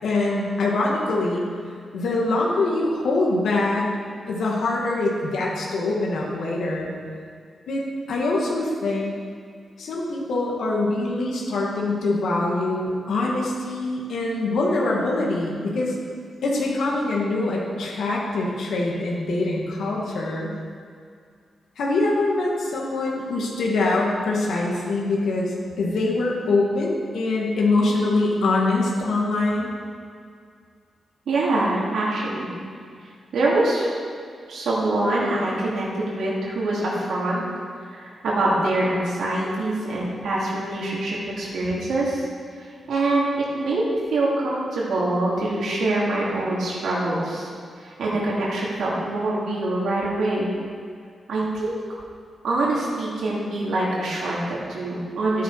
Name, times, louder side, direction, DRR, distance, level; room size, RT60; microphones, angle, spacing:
voice 1, 0.0-1.4 1.9-3.9 4.3-6.9 7.7-7.8 8.1-9.2 9.8-16.0 16.4-20.6 21.8-29.7, left 2 dB, 85° left, -3 dB, 2.3 m, -24 dB
voice 2, 31.3-32.5 33.3-33.9 34.5-37.4 37.9-42.2 42.6-47.5 47.8-50.5 51.3-51.8 52.4-55.4, right 2 dB, 85° right, -7 dB, 2.9 m, -24 dB
13.0 x 9.5 x 5.0 m, 2.2 s
wide cardioid pair, 175°, 0 cm